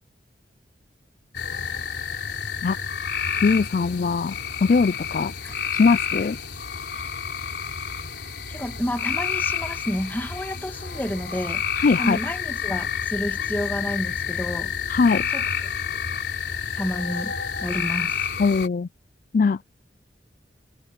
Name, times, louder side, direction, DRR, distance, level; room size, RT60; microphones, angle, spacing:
sound 1, 1.3-18.7, left 7 dB, 75° left, 3.8 m, -29 dB
voice 1, 3.4-4.4 4.6-5.3 5.7-6.4 11.8-12.2 14.9-15.2 18.4-18.9 19.3-19.6, left 4 dB, 50° left, 0.4 m, -20 dB
voice 2, 8.5-11.6 12.0-14.7 15.1-15.4 15.9-16.0 16.7-17.3 17.6-18.3, equal, 10° left, 1.7 m, -30 dB
head